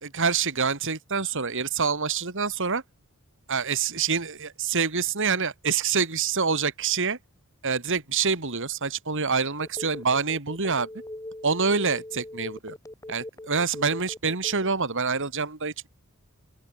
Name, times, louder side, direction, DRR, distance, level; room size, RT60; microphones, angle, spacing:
voice 1, 0.0-2.8 3.5-7.2 7.6-10.9 11.4-12.7 13.1-15.9, right 5 dB, 60° right, 2.7 m, -26 dB
Telephone, 9.6-14.8, left 1 dB, 15° left, 5.7 m, -40 dB
open air
head